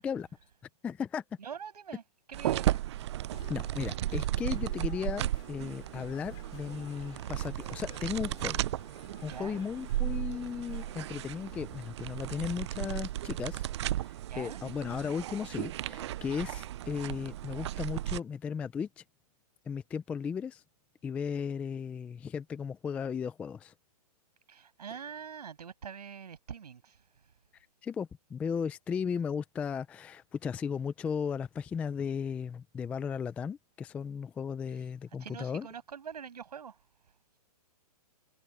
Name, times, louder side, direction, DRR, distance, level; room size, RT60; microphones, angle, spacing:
voice 1, 0.8-1.2 3.5-8.6 9.2-13.6 14.0-19.0 19.7-20.6 21.0-23.7 27.8-35.7, left 6 dB, 5° left, 0.4 m, -36 dB
voice 2, 1.4-2.0 2.3-3.0 9.3-9.6 14.3-14.6 24.5-27.0 35.2-36.8, right 7 dB, 80° right, 7.2 m, -44 dB
sound 1, 2.3-18.2, right 13 dB, 45° right, 0.5 m, -35 dB
sound 2, 3.3-11.9, left 15 dB, 25° left, 5.4 m, -55 dB
hypercardioid pair, 155°, 20 cm